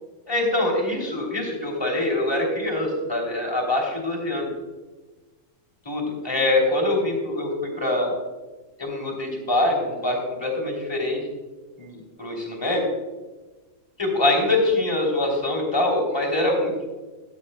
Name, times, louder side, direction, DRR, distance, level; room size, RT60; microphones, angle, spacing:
voice 1, 0.3-4.5 5.8-8.1 8.8-11.2 11.8-12.8 14.0-16.8, left 2 dB, 10° left, -1 dB, 2.0 m, -24 dB
14.0 x 10.5 x 2.2 m, 1.2 s
omnidirectional pair, 4.3 m